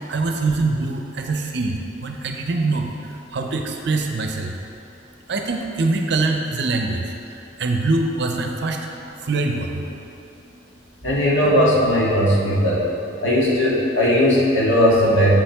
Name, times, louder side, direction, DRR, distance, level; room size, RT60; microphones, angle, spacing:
voice 1, 0.1-4.6 5.3-8.8 9.2-9.8, right 3 dB, 60° right, 3 dB, 0.6 m, -24 dB
voice 2, 11.0-12.8 13.2-15.3, equal, 80° left, -5 dB, 1.6 m, -17 dB
7.3 x 7.2 x 3.5 m, 2.9 s
head